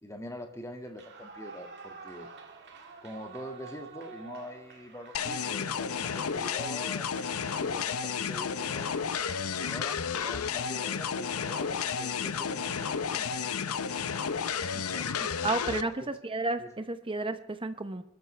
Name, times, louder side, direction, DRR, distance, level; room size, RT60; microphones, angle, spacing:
voice 1, 0.0-2.3 3.0-9.1 9.6-13.5 14.6-16.1 16.6-16.7, left 1 dB, 15° left, 3 dB, 2.0 m, -44 dB
Clapping / Cheering / Applause, 0.9-8.3, right 4 dB, 50° right, 2.0 m, -49 dB
sound 1, 5.1-15.8, left 6 dB, 70° left, 0.7 m, -32 dB
voice 2, 15.4-15.9 16.2-18.0, right 2 dB, 25° right, 10 dB, 0.8 m, -31 dB
25.5 x 14.0 x 3.3 m, 0.80 s
head